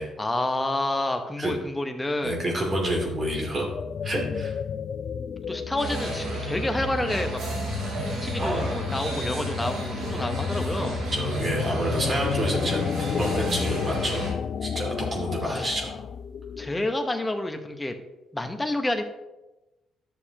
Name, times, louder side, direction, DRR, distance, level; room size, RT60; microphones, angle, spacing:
voice 1, 0.2-2.4 5.4-7.4 8.2-11.0 15.4-15.7 16.6-17.9 18.3-19.0, left 1 dB, 15° left, 6 dB, 1.0 m, -29 dB
voice 2, 2.2-3.7 4.0-4.5 8.4-8.8 9.1-9.3 11.1-12.8 13.2-14.3 14.6-16.0, right 1 dB, 40° right, -1 dB, 2.6 m, -28 dB
sound 1, 2.8-17.0, left 7 dB, 60° left, 0.3 m, -32 dB
sound 2, 5.8-14.3, right 3 dB, 85° right, 2.9 m, -33 dB
11.5 x 6.7 x 3.0 m, 1.0 s
cardioid pair, 90°, 0 cm